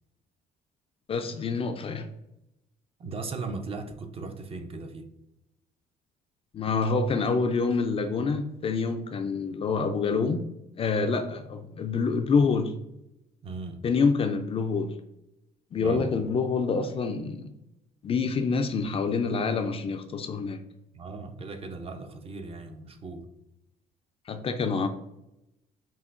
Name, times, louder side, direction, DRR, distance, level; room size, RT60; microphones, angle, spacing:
voice 1, 1.1-2.1 6.5-10.5 10.8-12.7 13.8-14.9 15.7-17.5 18.0-20.6 24.3-24.9, left 4 dB, 35° left, 7 dB, 0.3 m, -27 dB
voice 2, 3.0-5.1 13.4-13.8 15.8-16.1 20.9-23.3, right 3 dB, 35° right, 6 dB, 0.5 m, -38 dB
5.6 x 2.2 x 2.4 m, 0.88 s
cardioid pair, 110°, 17 cm